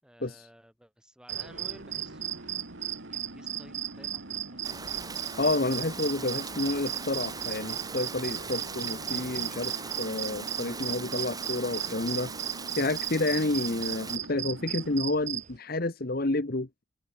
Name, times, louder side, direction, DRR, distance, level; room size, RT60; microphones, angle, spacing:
voice 1, 0.0-2.4 3.0-5.0, equal, 5° right, 5.3 m, -54 dB
sound 1, 1.3-15.6, right 11 dB, 35° right, 0.6 m, -36 dB
sound 2, 1.3-15.0, right 1 dB, 70° right, 4.6 m, -45 dB
Rain, 4.6-14.2, right 4 dB, 20° right, 2.3 m, -40 dB
voice 2, 5.4-12.3 12.7-16.8, left 2 dB, 50° left, 1.2 m, -30 dB
open air
head